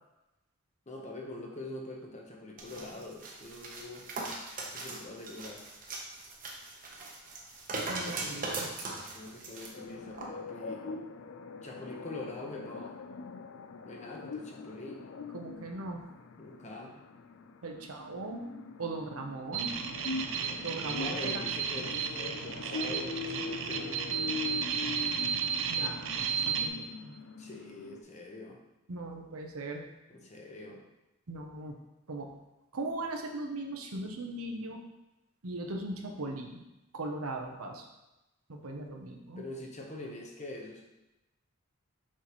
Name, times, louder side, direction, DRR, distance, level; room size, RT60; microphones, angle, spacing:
voice 1, 0.9-4.1 4.7-5.7 8.0-8.2 9.1-11.0 11.6-13.0 13.8-15.1 16.4-17.0 20.3-24.1 27.4-28.6 30.1-30.8 39.4-40.9, left 2 dB, 30° left, 0 dB, 0.9 m, -44 dB
sound 1, 2.6-9.7 10.1-10.3, right 2 dB, 40° right, 0.9 m, -40 dB
voice 2, 7.9-8.7 15.3-16.0 17.6-18.4 18.8-19.8 20.6-21.4 25.7-27.1 28.9-29.8 31.3-31.8 32.1-32.3 32.7-34.8 35.4-36.6 36.9-37.9 38.5-39.4, right 2 dB, 85° right, 3 dB, 0.8 m, -39 dB
sound 2, 9.7-28.0, left 4 dB, 60° left, 0.4 m, -42 dB
sound 3, 19.5-26.7, right 7 dB, 60° right, 0.5 m, -33 dB
6.4 x 5.6 x 3.1 m, 0.99 s
head